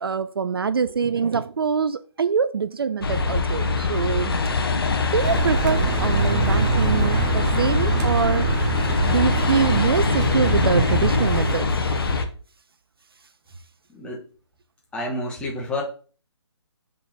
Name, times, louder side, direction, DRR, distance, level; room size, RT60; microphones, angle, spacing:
voice 1, 0.0-4.3 5.1-8.6 9.1-12.0, right 6 dB, 55° right, 0.4 m, -24 dB
sound 1, 3.0-12.2, left 4 dB, 55° left, 1.2 m, -23 dB
Car, 5.2-11.5, right 5 dB, 20° right, 1.0 m, -25 dB
voice 2, 14.9-15.8, left 1 dB, 5° left, 1.4 m, -29 dB
5.7 x 3.7 x 5.6 m
figure-of-eight pair, 140°, 15 cm